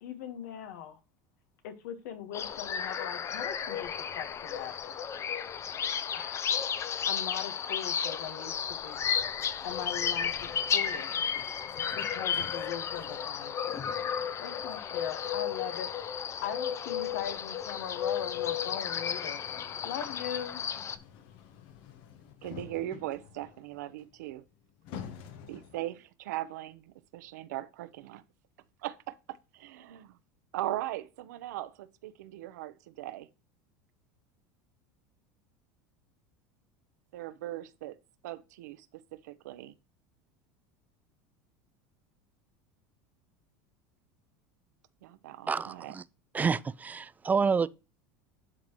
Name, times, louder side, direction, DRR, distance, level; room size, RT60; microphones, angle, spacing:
voice 1, 0.0-1.0 1.6-3.9 4.1-5.0 6.1-6.5 7.1-9.1 9.6-10.3 10.7-11.2 11.9-14.0 14.4-15.9 16.4-19.4 19.8-20.6, left 9 dB, 80° left, 1.4 m, -40 dB
sound 1, 2.3-21.0, left 8 dB, 30° left, 0.6 m, -33 dB
sound 2, 9.6-26.0, left 7 dB, 60° left, 1.1 m, -51 dB
voice 2, 22.4-24.4 25.5-28.2 28.8-30.2 30.5-33.3 37.1-38.0 38.2-38.9 39.1-39.7 45.0-45.9, right 14 dB, 85° right, 0.7 m, -39 dB
voice 3, 45.5-46.0 46.3-47.7, right 5 dB, 20° right, 0.3 m, -28 dB
11.5 x 3.9 x 3.0 m
supercardioid pair, 110°, 9 cm